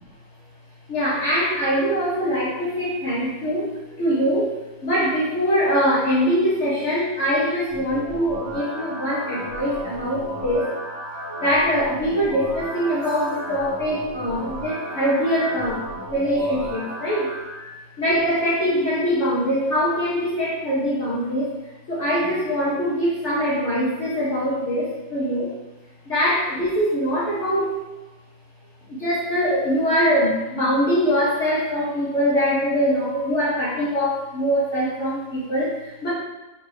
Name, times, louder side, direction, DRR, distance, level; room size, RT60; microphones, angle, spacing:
voice 1, 0.9-10.7 11.4-17.4 18.0-25.6 26.0-27.9 28.9-36.1, equal, 50° left, -9 dB, 1.1 m, -23 dB
sound 1, 7.7-17.7, equal, 20° left, 0.8 m, -34 dB
4.1 x 2.6 x 4.7 m, 1.1 s
omnidirectional pair, 1.7 m